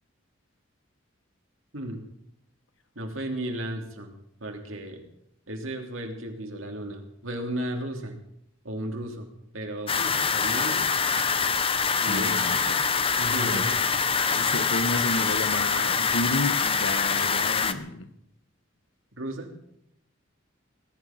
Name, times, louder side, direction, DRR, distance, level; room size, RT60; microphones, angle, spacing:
voice 1, 2.9-4.1 4.4-5.0 5.5-8.2 8.6-10.9 12.0-12.4 13.2-13.8 19.2-19.5, right 1 dB, 90° right, 3 dB, 3.2 m, -34 dB
sound 1, 9.9-17.7, left 5 dB, 30° left, 0.9 m, -25 dB
voice 2, 12.0-12.9 13.4-13.6 14.3-18.1, left 2 dB, 70° left, 10 dB, 1.6 m, -31 dB
19.5 x 11.5 x 6.0 m, 0.77 s
head